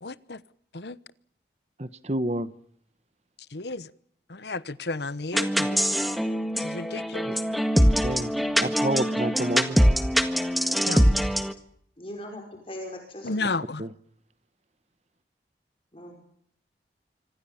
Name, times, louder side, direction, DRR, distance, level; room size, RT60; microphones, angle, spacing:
voice 1, 0.0-0.4 0.7-1.0 3.5-3.9 4.3-5.9 6.6-7.3 10.9-11.1 13.2-13.8, left 3 dB, 75° left, 1.1 m, -33 dB
voice 2, 1.8-2.5 7.2-7.3 8.0-9.8 13.8-13.9, right 1 dB, 40° right, 1.1 m, -29 dB
sound 1, 5.3-11.5, equal, ahead, 1.6 m, -23 dB
voice 3, 12.0-13.4 15.9-16.1, left 1 dB, 30° left, 5.5 m, -39 dB
26.0 x 25.5 x 7.2 m
head